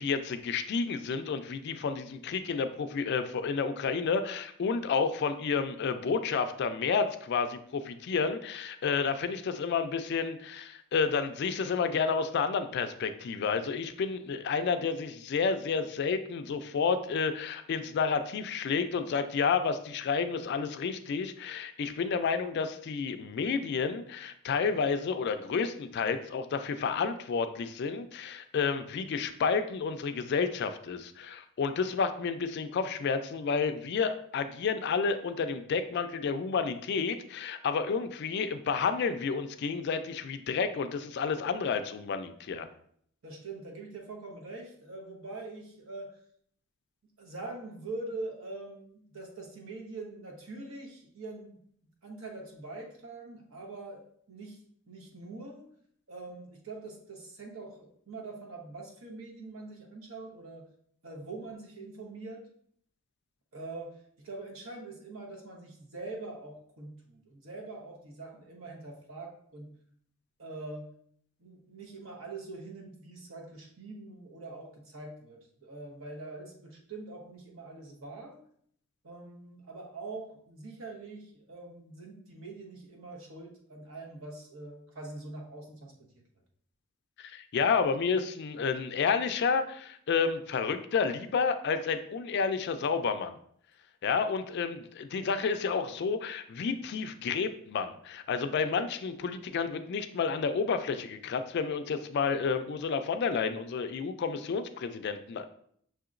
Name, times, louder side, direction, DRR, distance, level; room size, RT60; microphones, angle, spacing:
voice 1, 0.0-42.7 87.2-93.4 94.0-105.5, left 5 dB, 50° left, 9 dB, 0.3 m, -30 dB
voice 2, 43.2-46.2 47.2-51.6 52.0-54.6 54.9-55.7 56.1-60.7 61.0-62.5 63.5-69.7 70.4-70.9 71.4-78.4 79.0-86.2, right 2 dB, 70° right, 1 dB, 1.0 m, -44 dB
6.1 x 2.8 x 2.5 m, 0.64 s
head